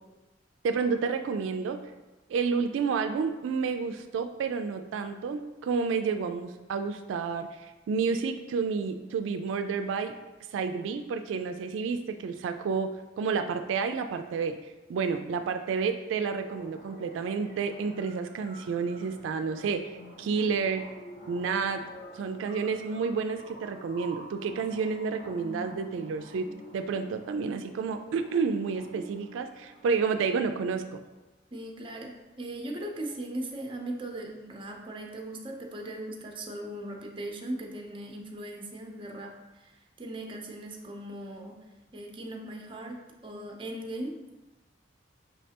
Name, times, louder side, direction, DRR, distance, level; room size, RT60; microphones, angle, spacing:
voice 1, 0.6-1.8 2.3-10.1 10.5-14.6 14.9-19.8 20.2-20.8 21.3-21.8 22.1-26.5 26.7-31.0, right 5 dB, 85° right, 8 dB, 0.3 m, -30 dB
sound 1, 16.4-30.3, equal, 40° left, 1.0 m, -48 dB
voice 2, 31.5-41.6 41.9-44.3, right 1 dB, 25° right, 1 dB, 0.6 m, -39 dB
5.6 x 3.2 x 2.8 m, 1.1 s
head